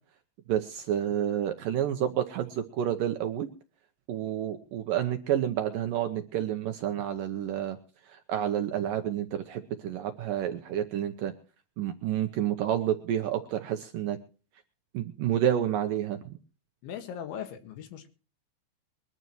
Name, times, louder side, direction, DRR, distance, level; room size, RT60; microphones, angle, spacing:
voice 1, 0.5-3.5 4.1-7.8 8.1-11.3 11.8-14.2 14.9-16.2, right 10 dB, 80° right, 6 dB, 2.0 m, -29 dB
voice 2, 16.8-18.1, left 9 dB, 80° left, 8 dB, 4.1 m, -39 dB
23.0 x 12.5 x 3.1 m, 0.36 s
omnidirectional pair, 5.2 m